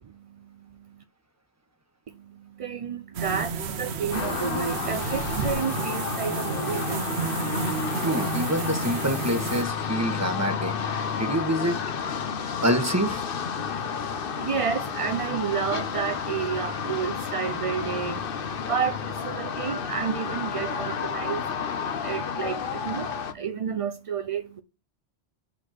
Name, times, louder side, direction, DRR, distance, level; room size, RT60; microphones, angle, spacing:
voice 1, 0.2-1.0 2.1-7.4 13.8-24.6, right 7 dB, 55° right, 0.4 m, -31 dB
sound 1, 3.1-9.6, right 5 dB, 80° right, 1.0 m, -31 dB
sound 2, 4.1-23.3, left 6 dB, 60° left, 0.9 m, -31 dB
voice 2, 8.0-11.8 12.6-13.2, right 1 dB, 15° right, 1.1 m, -26 dB
5.3 x 4.2 x 5.9 m
omnidirectional pair, 1.1 m